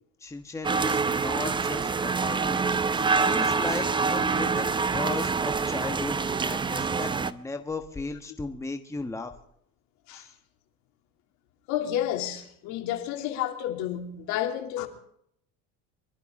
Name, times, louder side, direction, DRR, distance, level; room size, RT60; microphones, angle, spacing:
voice 1, 0.2-2.6 2.9-9.3 10.1-10.3, left 3 dB, 10° left, 1.3 m, -36 dB
sound 1, 0.6-7.3, right 4 dB, 15° right, 0.6 m, -26 dB
voice 2, 11.7-14.9, left 11 dB, 65° left, 2.7 m, -30 dB
24.5 x 12.5 x 3.7 m
cardioid pair, 125°, 31 cm